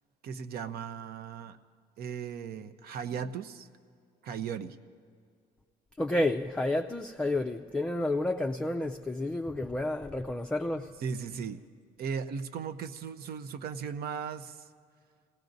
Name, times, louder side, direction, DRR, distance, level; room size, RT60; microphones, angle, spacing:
voice 1, 0.2-1.6 2.0-3.7 4.2-4.8 11.0-11.6 12.0-14.7, right 6 dB, 65° right, 0.8 m, -37 dB
voice 2, 6.0-10.9, left 1 dB, 5° left, 0.4 m, -30 dB
26.0 x 18.0 x 2.7 m
cardioid pair, 110°, 17 cm